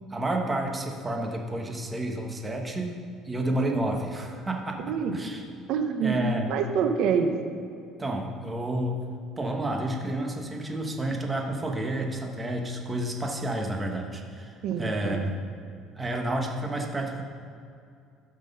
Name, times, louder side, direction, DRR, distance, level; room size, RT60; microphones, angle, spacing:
voice 1, 0.1-3.0 3.2-5.4 6.0-6.5 8.0-9.0 9.4-15.4 15.9-17.2, right 1 dB, 15° right, 2 dB, 1.3 m, -30 dB
voice 2, 4.8-5.2 5.7-6.2 6.5-7.4 14.6-15.2, right 6 dB, 65° right, 6 dB, 1.1 m, -26 dB
13.5 x 6.2 x 5.5 m, 2.4 s
cardioid pair, 130°, 0 cm